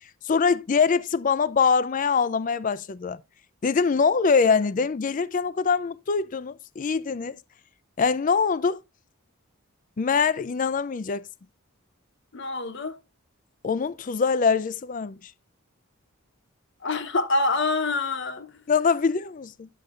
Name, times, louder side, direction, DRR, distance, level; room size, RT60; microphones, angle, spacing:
voice 1, 0.2-3.2 3.6-7.4 8.0-8.8 10.0-11.3 13.6-15.3 18.7-19.7, left 5 dB, 35° left, 0.4 m, -23 dB
voice 2, 12.3-13.0 16.8-18.6, left 2 dB, 55° left, 1.0 m, -26 dB
9.1 x 6.7 x 2.4 m
head